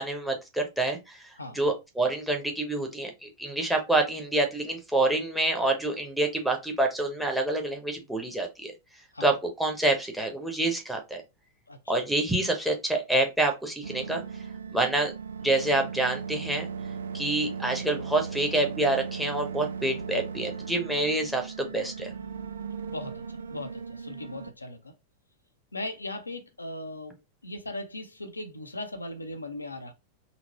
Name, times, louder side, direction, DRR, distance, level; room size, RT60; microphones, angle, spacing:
voice 1, 0.0-8.7 9.2-11.2 11.9-14.2 14.7-15.1 15.4-16.7 17.1-22.1, right 2 dB, ahead, 0.9 m, -27 dB
sound 1, 13.8-24.5, right 6 dB, 70° right, 0.3 m, -37 dB
voice 2, 22.9-25.0 25.7-27.2 27.4-29.9, left 2 dB, 80° left, 0.5 m, -38 dB
3.9 x 2.1 x 2.9 m
figure-of-eight pair, 90°, 0 cm